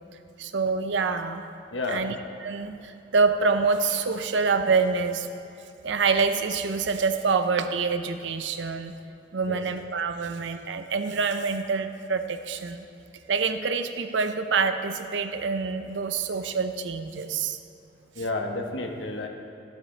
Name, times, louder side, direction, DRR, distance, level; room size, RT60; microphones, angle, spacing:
voice 1, 0.4-1.4 1.9-2.1 2.4-5.3 5.8-8.9 9.3-12.8 13.3-17.6, right 4 dB, 75° right, 8 dB, 0.6 m, -26 dB
voice 2, 1.7-2.1 9.5-9.6 18.1-19.3, left 2 dB, 75° left, 2 dB, 1.1 m, -31 dB
12.5 x 12.0 x 3.3 m, 2.7 s
head